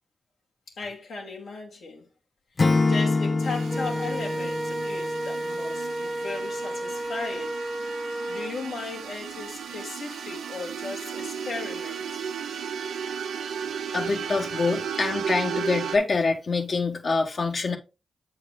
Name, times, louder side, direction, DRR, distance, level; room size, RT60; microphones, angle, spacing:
voice 1, 0.7-2.1 2.6-7.6 8.3-12.2, left 4 dB, 85° left, 2.3 m, -37 dB
Acoustic guitar / Strum, 2.6-5.7, left 3 dB, 45° left, 0.3 m, -25 dB
sound 1, 3.4-16.0, right 7 dB, 90° right, 0.6 m, -35 dB
Wind instrument woodwind instrument, 3.7-8.5, right 1 dB, ahead, 0.6 m, -32 dB
voice 2, 13.9-17.8, left 4 dB, 60° left, 1.4 m, -25 dB
7.6 x 4.7 x 3.7 m
cardioid pair, 50°, 0 cm